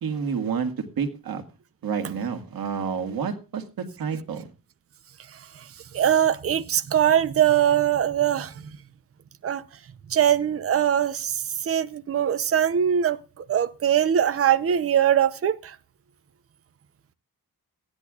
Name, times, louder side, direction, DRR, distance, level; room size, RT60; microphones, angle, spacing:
voice 1, 0.0-0.7 1.0-1.4 1.8-3.6 4.0-4.5, right 6 dB, 80° right, 1.9 m, -29 dB
voice 2, 5.9-8.5 9.4-9.6 10.1-11.3 11.7-13.2 13.5-15.6, right 9 dB, 40° right, 0.7 m, -21 dB
16.5 x 10.5 x 2.4 m
wide cardioid pair, 125°, 35 cm